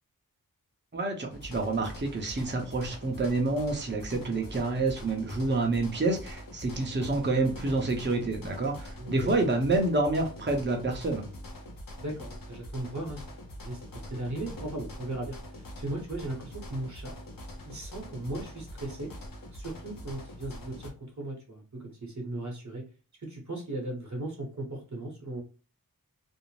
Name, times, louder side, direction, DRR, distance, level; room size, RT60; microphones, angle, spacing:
voice 1, 0.9-11.3, right 2 dB, 30° right, 2 dB, 0.7 m, -28 dB
sound 1, 1.3-20.9, left 1 dB, 65° left, 0.6 m, -44 dB
voice 2, 9.0-9.4 12.0-13.2 13.6-13.8 14.1-17.1 17.6-19.1 19.5-22.8 23.2-25.4, right 1 dB, 50° right, 0 dB, 0.9 m, -37 dB
2.6 x 2.0 x 3.0 m, 0.34 s
wide cardioid pair, 45°, 36 cm